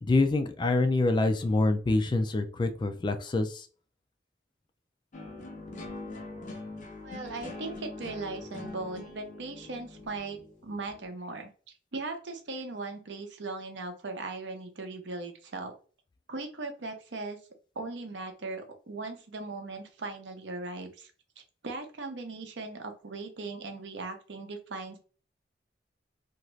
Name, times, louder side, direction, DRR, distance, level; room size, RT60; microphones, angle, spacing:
voice 1, 0.0-3.7, left 2 dB, 25° left, 8 dB, 0.3 m, -26 dB
sound 1, 5.1-11.1, left 2 dB, 45° left, 0.7 m, -43 dB
voice 2, 7.0-11.5 11.9-15.7 16.3-17.4 17.8-21.1 21.6-25.0, right 3 dB, 75° right, 6 dB, 0.7 m, -38 dB
2.6 x 2.4 x 3.1 m, 0.37 s
head